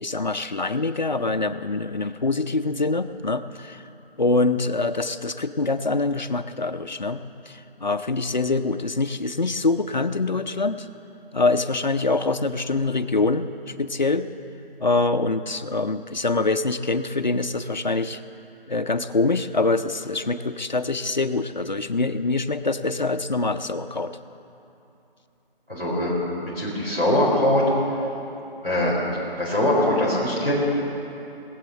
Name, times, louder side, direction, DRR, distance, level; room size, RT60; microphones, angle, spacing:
voice 1, 0.0-3.8 4.2-10.9 11.3-13.5 13.8-14.3 14.8-18.2 18.7-24.1, left 3 dB, 50° left, 10 dB, 0.5 m, -24 dB
voice 2, 25.7-26.1 26.5-27.6 28.6-29.0 29.4-30.5, left 1 dB, 10° right, -16 dB, 2.6 m, -22 dB
20.0 x 7.9 x 7.1 m, 2.9 s
figure-of-eight pair, 175°, 30 cm